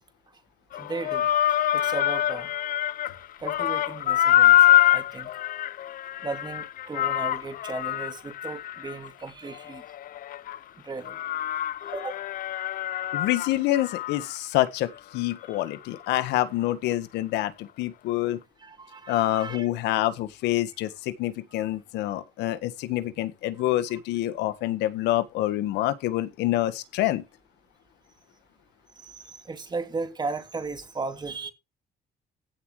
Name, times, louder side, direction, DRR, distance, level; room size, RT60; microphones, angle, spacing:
sound 1, 0.7-3.2 3.5-10.6 11.0-14.4 14.7-14.8 15.3-15.4, left 13 dB, 55° left, 0.6 m, -25 dB
voice 1, 0.7-1.3 1.7-2.5 3.4-5.3 6.2-9.8 10.8-11.2 11.9-12.1 15.5-15.6 18.6-19.7 21.6-21.7 29.0-31.5, right 4 dB, 25° right, 3.1 m, -36 dB
voice 2, 13.1-18.4 19.1-27.2, left 15 dB, 85° left, 1.6 m, -27 dB
16.0 x 7.4 x 3.3 m
cardioid pair, 110°, 17 cm